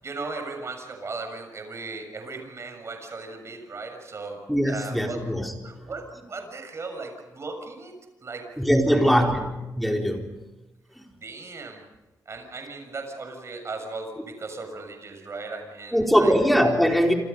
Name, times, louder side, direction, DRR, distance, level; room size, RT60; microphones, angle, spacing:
voice 1, 0.0-4.4 4.7-5.2 5.6-8.5 8.9-9.3 11.1-11.8 12.3-16.3, right 3 dB, 45° right, 5 dB, 6.8 m, -37 dB
voice 2, 4.5-5.5 8.6-9.5 9.8-10.3 11.0-11.1 15.9-17.1, equal, ahead, 1 dB, 4.3 m, -21 dB
28.0 x 27.5 x 5.6 m, 1.1 s
wide cardioid pair, 115°, 7 cm